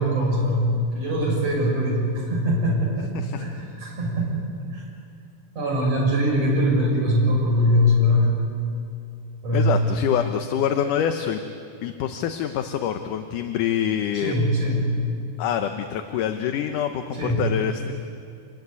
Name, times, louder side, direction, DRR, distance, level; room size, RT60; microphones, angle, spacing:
voice 1, 0.0-3.1 3.4-4.3 4.7-4.8 5.6-8.4 9.4-9.7 14.2-14.9 17.2-17.5, equal, 45° right, -2 dB, 8.0 m, -22 dB
voice 2, 9.5-11.4 11.8-14.4 15.4-17.9, left 9 dB, 70° left, 7 dB, 2.3 m, -26 dB
27.5 x 21.5 x 9.7 m, 2.4 s
omnidirectional pair, 4.1 m